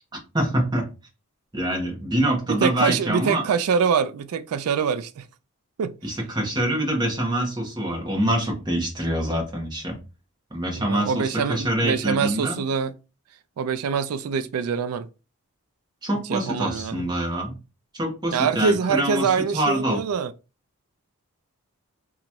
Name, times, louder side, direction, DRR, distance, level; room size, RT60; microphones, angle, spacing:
voice 1, 0.3-0.9 1.5-3.5 6.0-10.0 10.5-12.6 16.0-17.6 17.9-20.0, right 1 dB, 20° right, 1.0 m, -25 dB
voice 2, 2.5-5.3 5.8-5.9 10.8-12.9 13.6-15.1 16.3-17.1 18.3-20.3, right 6 dB, 85° right, 0.3 m, -24 dB
2.9 x 2.4 x 4.2 m
head